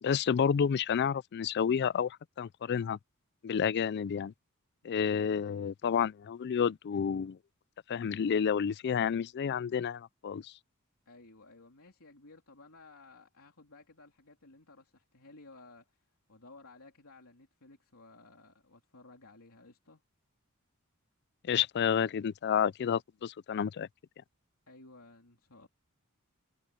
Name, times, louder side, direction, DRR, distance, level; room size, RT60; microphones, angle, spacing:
voice 1, 0.0-3.0 3.4-4.3 4.8-7.4 7.9-10.5 21.4-23.9, left 7 dB, 50° left, 0.3 m, -30 dB
voice 2, 11.1-20.0 24.7-25.7, left 3 dB, 75° left, 3.5 m, -56 dB
head